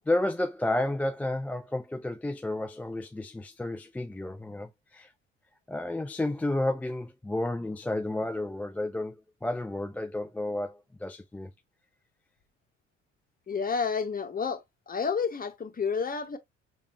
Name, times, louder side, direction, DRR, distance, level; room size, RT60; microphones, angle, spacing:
voice 1, 0.1-5.1 5.7-11.5, left 1 dB, 5° left, 0.3 m, -31 dB
voice 2, 13.5-14.6 14.9-16.4, left 5 dB, 25° left, 1.3 m, -30 dB
6.7 x 2.6 x 3.1 m
figure-of-eight pair, 50°, 36 cm